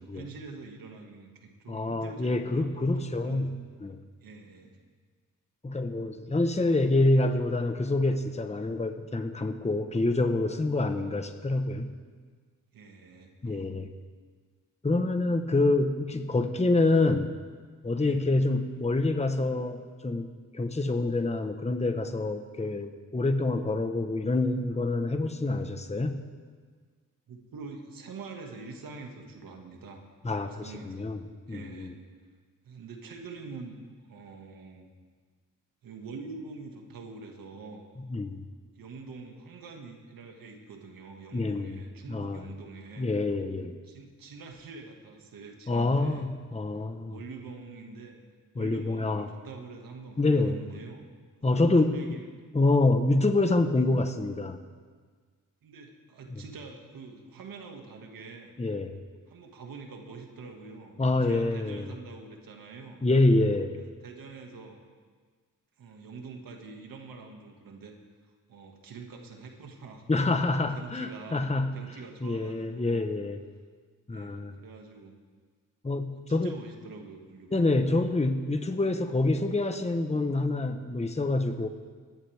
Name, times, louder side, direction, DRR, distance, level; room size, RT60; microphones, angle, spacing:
voice 1, 0.0-3.5 4.2-4.8 10.8-11.1 12.7-13.8 18.0-18.3 27.3-30.0 30.4-31.1 31.5-31.9 32.6-33.8 34.0-34.9 35.8-37.8 38.8-43.1 43.8-46.3 47.1-48.2 48.5-51.1 51.4-52.3 55.6-58.5 59.3-63.0 63.8-64.8 65.8-67.9 68.5-70.1 70.7-73.1 74.1-75.2 76.2-77.6 77.9-78.0, right 4 dB, 85° right, 2 dB, 2.1 m, -45 dB
voice 2, 1.7-3.5 3.8-4.0 5.6-11.9 13.4-13.9 14.8-17.3 17.8-26.2 30.2-31.2 31.5-31.9 38.1-38.4 41.3-41.8 42.1-42.5 43.0-43.8 45.7-47.2 48.5-49.3 50.2-50.6 51.4-51.9 52.5-54.6 58.6-59.0 61.0-61.9 63.0-63.8 70.1-71.7 72.2-73.4 74.1-74.5 75.8-76.5 77.5-81.7, left 2 dB, 20° left, 7 dB, 1.2 m, -26 dB
28.5 x 12.5 x 3.6 m, 1.5 s
cardioid pair, 60°, 34 cm